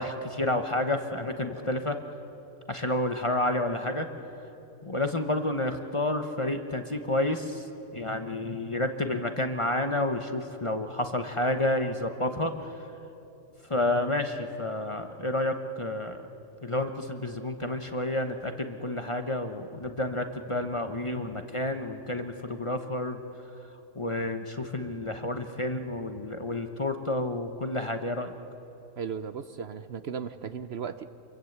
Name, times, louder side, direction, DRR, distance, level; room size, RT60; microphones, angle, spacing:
voice 1, 0.0-2.0 2.7-4.1 4.8-7.7 7.9-12.7 13.7-16.2 16.6-23.2 23.9-28.3, left 1 dB, 25° left, 6 dB, 1.0 m, -30 dB
voice 2, 29.0-31.1, right 6 dB, 60° right, 11 dB, 0.9 m, -36 dB
27.0 x 22.5 x 8.1 m, 2.9 s
omnidirectional pair, 1.4 m